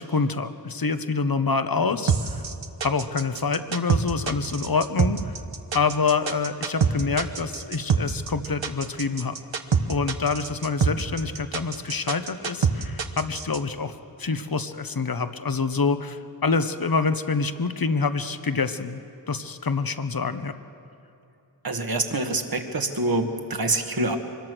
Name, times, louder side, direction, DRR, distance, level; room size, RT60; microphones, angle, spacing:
voice 1, 0.0-2.4 2.8-5.4 5.7-9.3 9.9-13.9 14.2-19.0 19.3-20.6, left 4 dB, 50° left, 10 dB, 1.2 m, -26 dB
sound 1, 2.1-13.6, right 6 dB, 80° right, 1.2 m, -25 dB
voice 2, 21.6-24.2, right 2 dB, 50° right, 5 dB, 1.8 m, -26 dB
24.5 x 21.0 x 6.3 m, 2.8 s
wide cardioid pair, 50°, 45 cm